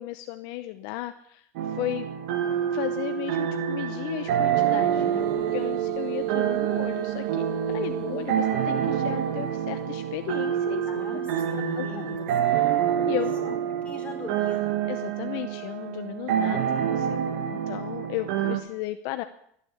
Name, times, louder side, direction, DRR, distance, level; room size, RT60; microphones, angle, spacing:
voice 1, 0.0-1.5 1.8-2.1 2.7-11.0 11.3-11.4 11.8-12.7 13.1-13.7 14.9-17.2 17.5-19.2, left 16 dB, 60° left, 9 dB, 0.8 m, -35 dB
sound 1, 1.6-18.6, right 9 dB, 70° right, 1.5 m, -27 dB
sound 2, 4.3-11.7, right 15 dB, 50° right, 0.8 m, -35 dB
voice 2, 10.9-12.2 12.5-12.7 13.4-13.5 13.8-14.8, left 1 dB, 15° left, 1 dB, 4.5 m, -40 dB
13.5 x 10.0 x 7.2 m, 0.69 s
supercardioid pair, 120°, 8 cm